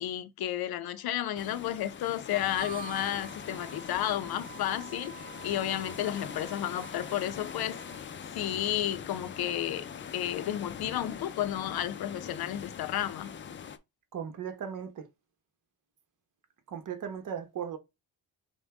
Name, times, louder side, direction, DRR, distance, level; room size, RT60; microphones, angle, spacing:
voice 1, 0.0-7.8 8.3-9.9 10.1-13.3, left 12 dB, 85° left, 0.6 m, -32 dB
sound 1, 1.4-13.8, left 7 dB, 35° left, 0.4 m, -42 dB
Harmonica, 2.4-8.1, right 7 dB, 25° right, 0.4 m, -47 dB
voice 2, 14.1-15.0 16.7-17.8, right 8 dB, 60° right, 1.0 m, -37 dB
5.3 x 2.2 x 3.5 m
cardioid pair, 100°, 36 cm